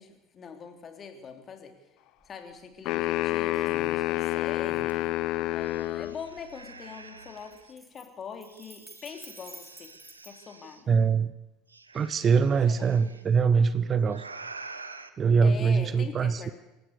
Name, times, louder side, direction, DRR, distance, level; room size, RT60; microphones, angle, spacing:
voice 1, 0.0-1.7 2.2-9.9 10.2-11.0 12.7-13.3 15.4-16.5, left 6 dB, 35° left, 5 dB, 3.3 m, -43 dB
sound 1, 2.2-2.3 2.7-3.2 3.5-4.1 4.6-6.5 7.3-10.3, right 1 dB, 10° right, 3.3 m, -50 dB
sound 2, 2.9-6.2, left 15 dB, 55° left, 0.7 m, -28 dB
sound 3, 4.9-5.0 5.3-7.7 8.4-10.8 11.7-13.2 14.0-15.1, right 3 dB, 85° right, 1.1 m, -47 dB
voice 2, 10.9-11.3 11.9-14.2 15.2-16.5, right 5 dB, 35° right, 16 dB, 1.0 m, -23 dB
26.5 x 15.0 x 6.9 m, 0.95 s
figure-of-eight pair, 70°, 0 cm